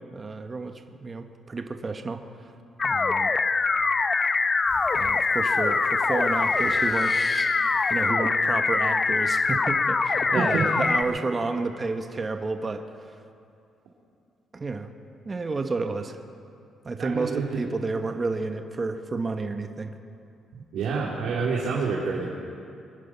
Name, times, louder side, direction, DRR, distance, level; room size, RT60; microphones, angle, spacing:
voice 1, 0.1-2.2 2.8-3.3 4.9-7.3 7.9-12.8 14.5-14.9 15.2-16.2 16.8-19.9, right 3 dB, 30° right, 6 dB, 1.1 m, -30 dB
sound 1, 2.8-11.0, left 4 dB, 35° left, 0.7 m, -23 dB
Breathing, 4.7-5.2 5.6-7.9, right 1 dB, 10° right, 2.2 m, -37 dB
voice 2, 10.3-10.7 17.0-17.6 20.7-22.3, right 5 dB, 85° right, -4 dB, 2.5 m, -27 dB
24.0 x 10.0 x 5.7 m, 2.5 s
cardioid pair, 90°, 0 cm